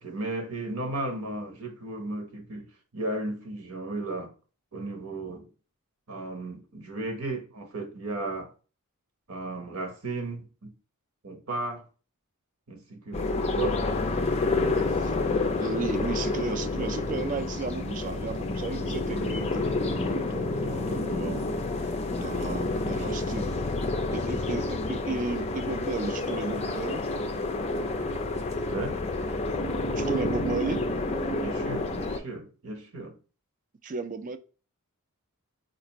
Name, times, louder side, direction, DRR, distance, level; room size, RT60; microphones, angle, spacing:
voice 1, 0.0-4.3 4.7-5.5 6.1-8.5 9.3-10.7 11.2-11.9 12.7-14.8 28.7-29.0 31.4-33.2, right 2 dB, 70° right, 0.9 m, -35 dB
sound 1, 13.1-32.2, left 2 dB, 30° left, 0.4 m, -29 dB
voice 2, 15.6-21.4 22.2-23.5 24.1-27.0 29.9-30.9 33.8-34.4, right 4 dB, 35° right, 0.4 m, -34 dB
4.2 x 2.5 x 2.9 m
head